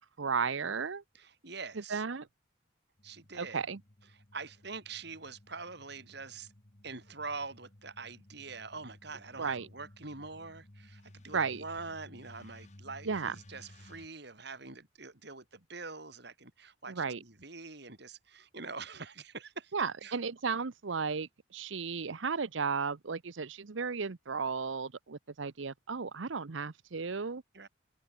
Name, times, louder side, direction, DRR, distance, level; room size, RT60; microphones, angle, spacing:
voice 1, 0.2-1.0 1.9-2.3 3.3-3.8 9.4-9.7 11.3-11.6 13.1-13.3 16.9-17.2 19.7-27.4, right 5 dB, 75° right, 0.8 m, -34 dB
voice 2, 1.1-2.0 3.0-3.6 4.3-6.5 6.8-19.7 20.0-20.2 27.5-27.7, right 4 dB, 55° right, 3.3 m, -44 dB
sound 1, 3.0-14.1, left 1 dB, 35° left, 1.6 m, -57 dB
head